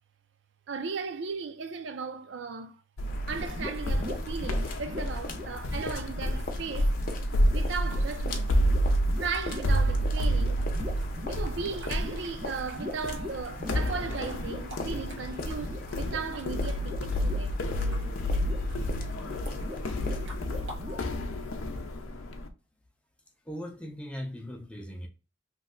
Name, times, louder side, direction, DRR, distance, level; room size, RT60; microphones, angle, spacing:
voice 1, 0.7-2.8 3.3-7.0 7.3-8.6 9.1-10.6 11.3-17.5, right 5 dB, 65° right, 0.4 m, -36 dB
sound 1, 3.0-22.5, equal, 85° left, 0.5 m, -30 dB
sound 2, 3.0-20.4, left 2 dB, 45° left, 0.6 m, -41 dB
sound 3, 3.3-21.1, left 1 dB, 80° right, 1.2 m, -42 dB
voice 2, 23.5-25.1, equal, 5° left, 0.5 m, -39 dB
3.0 x 2.1 x 3.7 m
head